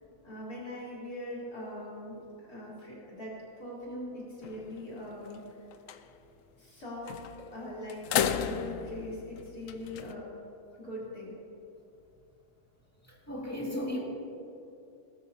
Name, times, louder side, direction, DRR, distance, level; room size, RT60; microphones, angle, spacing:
voice 1, 0.2-5.6 6.6-10.3 10.8-11.4, left 1 dB, 55° left, -7 dB, 4.1 m, -41 dB
sound 1, 4.4-4.9 5.3-5.4 5.7-6.0 7.1-7.5 7.9-10.1, left 9 dB, 75° left, 0.7 m, -33 dB
voice 2, 13.1-14.0, left 1 dB, 10° left, -4 dB, 2.2 m, -35 dB
19.0 x 12.5 x 2.8 m, 2.6 s
omnidirectional pair, 1.9 m